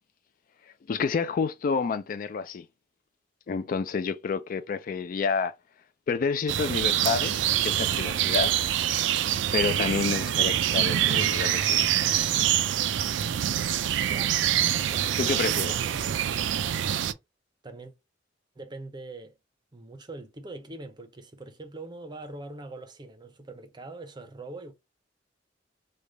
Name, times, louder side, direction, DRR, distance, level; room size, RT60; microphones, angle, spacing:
voice 1, 0.9-2.6 3.5-5.5 6.1-8.5 9.5-11.8 15.2-15.7, left 5 dB, 50° left, 0.3 m, -29 dB
sound 1, 6.5-17.1, right 11 dB, 75° right, 0.3 m, -25 dB
voice 2, 14.9-16.2 17.6-17.9 18.6-19.4 19.7-24.7, right 2 dB, 25° right, 0.5 m, -42 dB
3.2 x 2.2 x 3.8 m
head